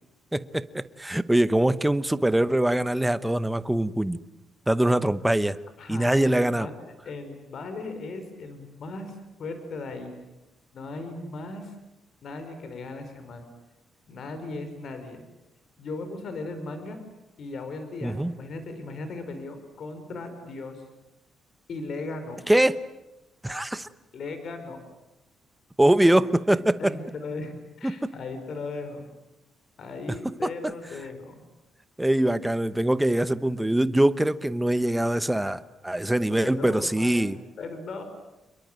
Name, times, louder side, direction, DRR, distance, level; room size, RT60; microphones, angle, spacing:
voice 1, 0.3-4.2 4.7-5.6 5.9-6.7 18.0-18.3 22.5-22.8 23.4-23.9 25.8-26.9 27.8-28.1 30.4-30.5 32.0-37.4, right 1 dB, 5° right, 14 dB, 0.9 m, -23 dB
voice 2, 5.8-10.1 10.7-11.7 12.2-13.5 14.1-15.2 15.8-17.0 17.4-20.8 21.7-22.5 24.1-24.8 26.0-26.2 26.5-27.5 27.8-29.1 29.8-31.4 36.4-37.3 37.6-38.0, left 3 dB, 50° left, 8 dB, 4.8 m, -37 dB
29.0 x 22.0 x 9.0 m, 0.95 s
cardioid pair, 160°, 0 cm